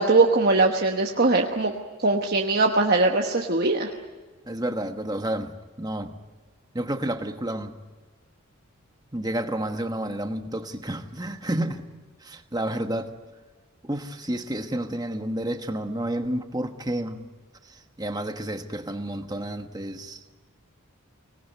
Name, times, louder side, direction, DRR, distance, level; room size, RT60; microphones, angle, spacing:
voice 1, 0.0-1.7 2.0-3.9, right 3 dB, 45° right, 1.2 m, -21 dB
voice 2, 4.5-6.2 6.7-7.7 9.1-11.9 12.2-13.1 13.8-17.3 17.6-20.2, right 1 dB, 20° right, 1.2 m, -30 dB
24.5 x 19.0 x 9.3 m
head